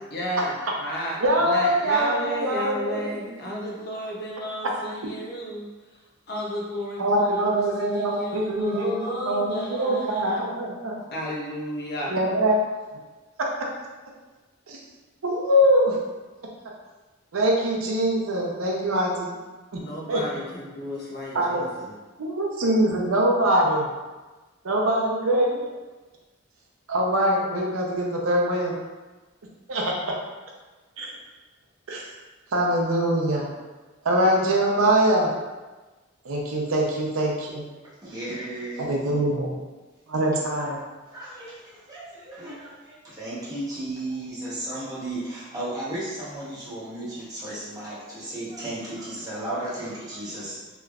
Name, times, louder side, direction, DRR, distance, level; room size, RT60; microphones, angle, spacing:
voice 1, 0.1-5.7 6.3-10.4 11.1-12.1 19.7-22.0, equal, 50° left, -3 dB, 0.7 m, -32 dB
voice 2, 1.2-3.1 7.0-11.0 12.1-12.6 14.7-14.8 15.2-16.0 17.3-19.3 19.7-19.8 20.1-20.2 21.3-21.6 22.2-23.9 24.6-25.7 26.9-28.8 29.7-29.9 31.0-31.1 31.9-32.1 32.5-33.4 34.0-35.3 36.2-37.6 38.8-39.6 40.1-40.8, right 1 dB, 85° right, -1 dB, 0.6 m, -23 dB
voice 3, 38.0-39.2 41.1-50.8, right 1 dB, 20° right, -9 dB, 1.0 m, -34 dB
3.3 x 3.0 x 2.4 m, 1.2 s
head